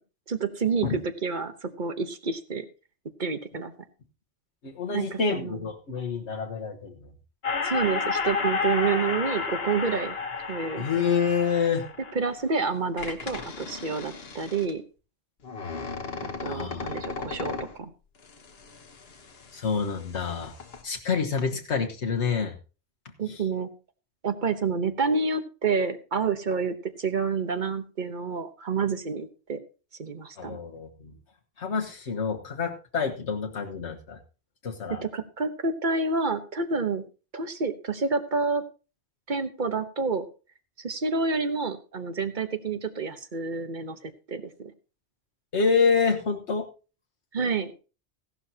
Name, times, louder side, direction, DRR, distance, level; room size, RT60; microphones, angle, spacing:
voice 1, 0.3-0.9 1.2-2.6 3.2-3.7 4.9-5.6 7.6-10.2 10.5-10.9 12.1-14.8 16.2-17.9 23.2-23.7 24.2-29.6 30.0-30.6 35.0-37.0 37.3-38.6 39.3-40.3 40.8-44.7 47.3-47.7, right 4 dB, 45° right, 9 dB, 1.1 m, -28 dB
voice 2, 4.6-6.9 10.8-11.8 16.4-17.0 19.5-20.5 20.8-22.5 23.3-23.4 30.4-31.1 31.6-34.2 34.6-35.0 45.5-46.7, left 5 dB, 80° left, 2 dB, 1.5 m, -27 dB
sound 1, 7.4-12.4 13.0-14.7 15.4-17.8 18.3-19.8 20.1-20.8, left 5 dB, 60° left, 1.4 m, -32 dB
16.0 x 11.5 x 2.8 m, 0.33 s
omnidirectional pair, 1.2 m